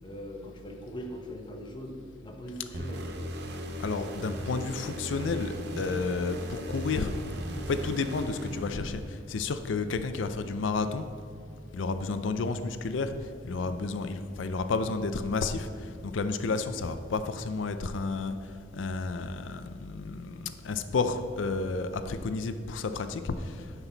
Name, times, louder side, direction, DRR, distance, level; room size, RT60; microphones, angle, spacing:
voice 1, 0.0-1.9 2.2-3.0, equal, 25° left, 2 dB, 0.8 m, -41 dB
sound 1, 2.7-9.2, equal, 60° right, 0.8 m, -38 dB
voice 2, 3.8-7.1 7.7-11.1 11.7-13.1 13.4-23.7, left 4 dB, 80° left, 10 dB, 0.4 m, -31 dB
9.7 x 6.1 x 3.9 m, 2.5 s
head